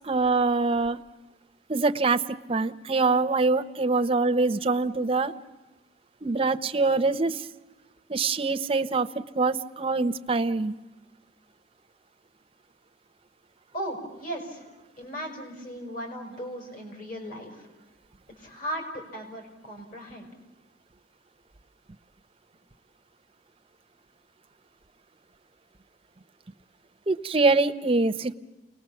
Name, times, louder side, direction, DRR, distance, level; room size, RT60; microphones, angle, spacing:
voice 1, 0.0-1.0 1.7-5.3 6.2-7.4 8.1-10.7 27.1-28.3, right 3 dB, 30° right, 10 dB, 0.7 m, -24 dB
voice 2, 13.7-14.7 15.0-17.7 18.4-20.3, equal, 45° left, 3 dB, 5.4 m, -37 dB
29.0 x 20.0 x 7.1 m, 1.1 s
head